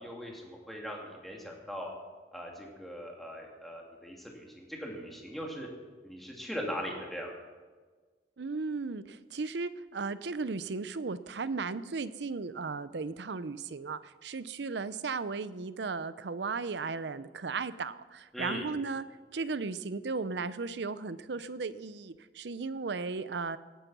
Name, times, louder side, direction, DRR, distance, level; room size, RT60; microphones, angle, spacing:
voice 1, 0.0-1.9 2.3-5.7 6.0-7.3 18.3-18.7, equal, ahead, -1 dB, 2.5 m, -40 dB
voice 2, 8.4-19.0 19.3-23.6, right 4 dB, 75° right, 14 dB, 0.6 m, -36 dB
17.5 x 9.1 x 6.1 m, 1.4 s
head